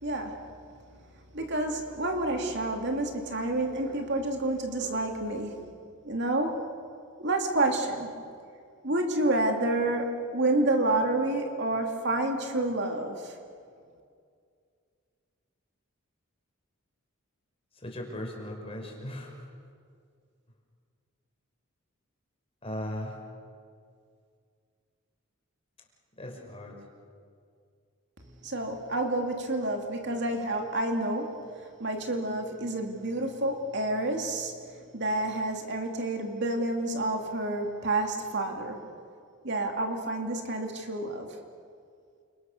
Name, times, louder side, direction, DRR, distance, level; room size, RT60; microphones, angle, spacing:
voice 1, 0.0-0.4 1.3-5.7 6.0-6.6 7.2-8.1 8.8-13.3 28.4-31.5 31.8-34.5 34.9-38.8 39.4-41.3, right 2 dB, 55° right, 3 dB, 2.7 m, -29 dB
voice 2, 17.8-19.3 22.6-23.1 26.2-26.8, left 1 dB, 25° left, 0 dB, 5.8 m, -37 dB
29.5 x 27.5 x 6.7 m, 2.3 s
head